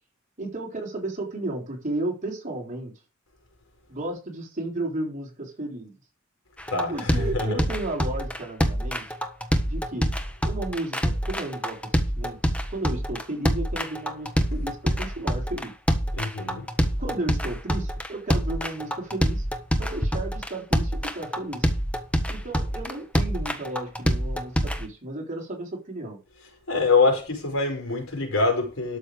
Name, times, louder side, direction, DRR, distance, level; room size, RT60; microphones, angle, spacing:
voice 1, 0.4-2.9 3.9-5.9 6.9-9.1 9.7-10.1 10.4-11.8 12.2-15.7 17.0-19.4 19.8-21.7 22.3-26.2, right 2 dB, 40° right, 4.0 m, -33 dB
sound 1, 6.6-24.8, equal, 5° left, 1.4 m, -25 dB
voice 2, 6.7-7.6 16.1-16.6 26.7-29.0, left 3 dB, 85° left, 5.1 m, -24 dB
12.5 x 6.7 x 5.0 m
head